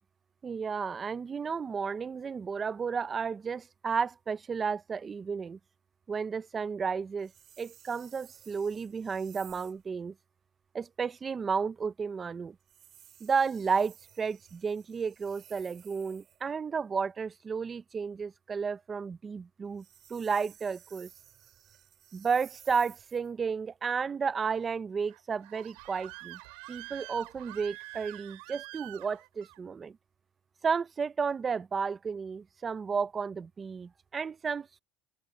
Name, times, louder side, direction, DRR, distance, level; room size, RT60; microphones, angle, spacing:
voice 1, 0.4-5.6 6.1-7.3 7.6-10.1 10.7-12.6 13.2-19.8 20.1-21.1 22.1-26.4 26.7-30.0 30.6-34.8, right 5 dB, 20° right, 0.4 m, -32 dB
sound 1, 7.2-9.8 12.6-16.4 19.6-23.3, right 10 dB, 35° right, 2.7 m, -56 dB
Screaming, 25.1-29.6, right 29 dB, 70° right, 3.3 m, -46 dB
open air
cardioid pair, 165°, 0 cm